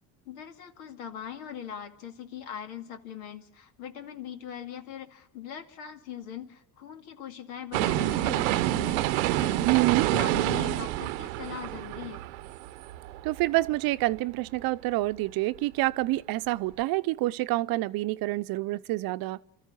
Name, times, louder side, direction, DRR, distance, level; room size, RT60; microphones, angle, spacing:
voice 1, 0.3-9.7 10.1-12.2, left 9 dB, 80° left, 2.3 m, -41 dB
sound 1, 7.7-13.7 14.1-14.2, right 15 dB, 85° right, 0.9 m, -28 dB
voice 2, 9.6-10.1 13.2-19.4, right 18 dB, 60° right, 0.7 m, -27 dB
27.0 x 14.0 x 9.4 m
supercardioid pair, 85°, 41 cm